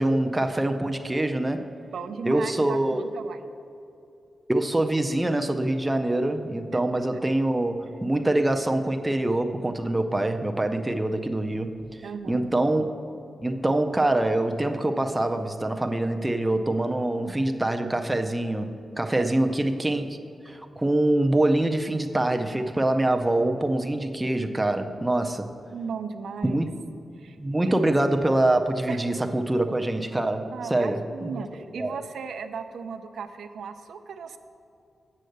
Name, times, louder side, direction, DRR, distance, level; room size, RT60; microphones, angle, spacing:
voice 1, 0.0-1.7 2.2-3.1 4.5-11.8 12.3-13.0 13.4-20.2 20.5-25.5 26.4-26.7 27.4-31.3 31.8-32.0, right 1 dB, 10° right, 5 dB, 0.4 m, -25 dB
voice 2, 1.9-3.5 6.7-6.8 7.9-8.0 12.0-12.5 19.1-19.3 25.7-26.6 27.2-27.4 27.6-27.8 28.9-29.2 30.5-34.4, right 6 dB, 80° right, 8 dB, 0.5 m, -36 dB
7.5 x 6.5 x 7.8 m, 2.6 s
wide cardioid pair, 155°, 0 cm